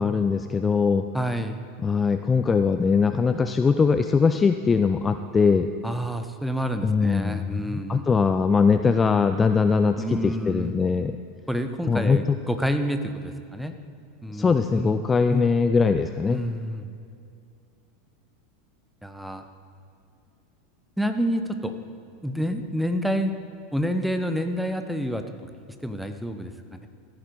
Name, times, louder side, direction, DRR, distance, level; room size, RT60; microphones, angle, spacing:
voice 1, 0.0-1.1 1.8-5.7 6.8-11.2 11.9-12.4 14.3-16.4, left 5 dB, 20° left, 9 dB, 0.4 m, -21 dB
voice 2, 1.1-1.6 5.8-8.0 10.0-10.7 11.5-13.7 14.2-14.9 15.3-15.5 16.3-16.9 19.0-19.4 21.0-21.7 22.2-23.3 23.7-25.2 25.8-26.9, equal, ahead, 8 dB, 0.8 m, -28 dB
14.5 x 9.0 x 4.7 m, 2.4 s
figure-of-eight pair, 85°, 0 cm